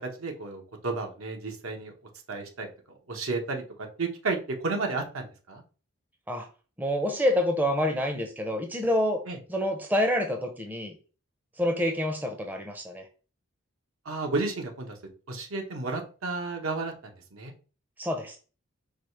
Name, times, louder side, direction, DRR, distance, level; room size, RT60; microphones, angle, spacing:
voice 1, 0.0-1.9 2.3-4.4 4.6-5.6 9.3-9.4 14.0-15.0 15.3-17.5, right 3 dB, 75° right, 3 dB, 1.0 m, -32 dB
voice 2, 6.8-9.2 9.5-11.0 11.6-13.0 18.0-18.4, left 1 dB, 10° right, 4 dB, 0.5 m, -27 dB
4.8 x 2.4 x 4.5 m, 0.36 s
head